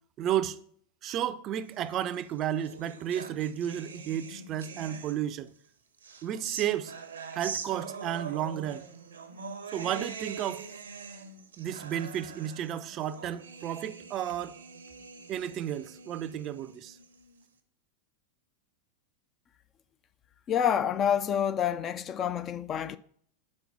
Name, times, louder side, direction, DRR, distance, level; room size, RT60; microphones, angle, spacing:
voice 1, 0.2-0.6 1.0-5.5 6.2-6.9 7.3-8.9 9.7-10.6 11.6-14.6 15.3-17.0, right 10 dB, 40° right, 0.4 m, -32 dB
sound 1, 2.1-5.5 6.0-17.4, right 5 dB, 85° right, 0.8 m, -43 dB
voice 2, 20.5-23.0, left 9 dB, 35° left, 0.3 m, -28 dB
5.3 x 4.2 x 5.9 m
hypercardioid pair, 95°, 0 cm